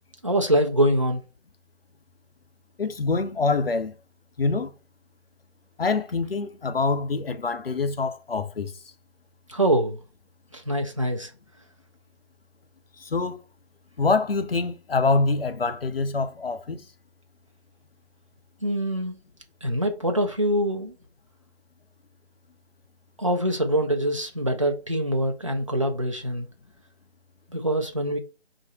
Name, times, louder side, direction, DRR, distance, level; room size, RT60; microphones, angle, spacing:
voice 1, 0.2-1.2 9.5-10.0 10.5-11.3 18.6-19.2 19.6-20.9 23.2-26.5 27.5-28.2, right 1 dB, 30° right, 0.4 m, -24 dB
voice 2, 2.8-4.0 4.4-4.7 5.8-8.7 13.0-13.4 14.0-16.8, left 3 dB, 60° left, 0.7 m, -25 dB
3.9 x 2.6 x 4.2 m
figure-of-eight pair, 155°, 33 cm